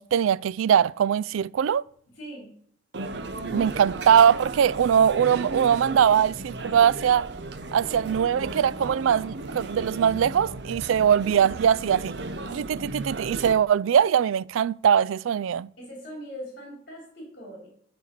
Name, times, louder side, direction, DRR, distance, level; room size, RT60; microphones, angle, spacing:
voice 1, 0.0-1.8 3.5-7.3 7.7-12.2 12.5-15.7, right 8 dB, 90° right, 0.3 m, -21 dB
voice 2, 2.1-2.5 15.8-17.7, equal, 50° left, 3.4 m, -41 dB
sound 1, 2.9-13.5, right 2 dB, 60° right, 0.8 m, -35 dB
12.5 x 4.2 x 6.6 m
head